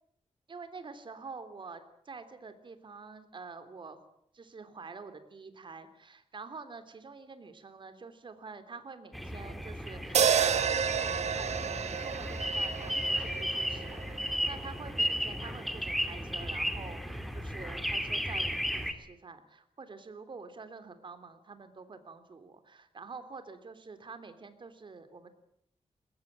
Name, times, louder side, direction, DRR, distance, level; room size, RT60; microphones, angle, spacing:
voice 1, 0.5-4.0 4.3-14.0 14.5-25.3, right 4 dB, 45° right, 10 dB, 3.3 m, -47 dB
sound 1, 9.1-18.9, equal, ahead, 2.5 m, -34 dB
sound 2, 10.1-14.4, right 7 dB, 70° right, 1.7 m, -30 dB
22.0 x 21.0 x 9.0 m, 0.74 s
wide cardioid pair, 150°, 12 cm